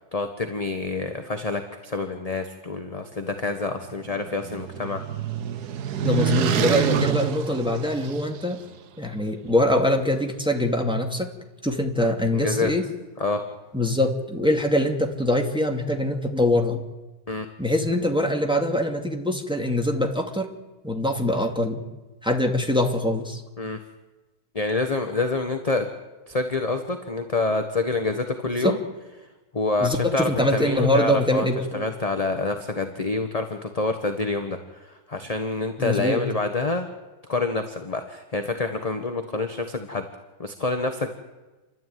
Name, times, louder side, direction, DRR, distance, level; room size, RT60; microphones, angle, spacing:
voice 1, 0.1-5.0 12.0-12.7 13.2-13.4 17.3-17.5 23.6-23.8 24.5-25.9 26.3-28.8 29.5-31.5 31.7-36.9 37.3-40.0 40.4-41.1, left 3 dB, 25° left, 6 dB, 1.3 m, -27 dB
sound 1, 3.8-8.6, right 9 dB, 85° right, 1.5 m, -27 dB
voice 2, 6.0-8.6 9.0-11.3 11.6-12.8 13.7-16.8 17.6-20.5 20.8-21.8 22.2-23.4 28.6-28.8 29.8-31.8 35.8-36.2, left 1 dB, 5° right, 2 dB, 2.4 m, -23 dB
29.5 x 12.5 x 9.4 m, 1.2 s
omnidirectional pair, 1.6 m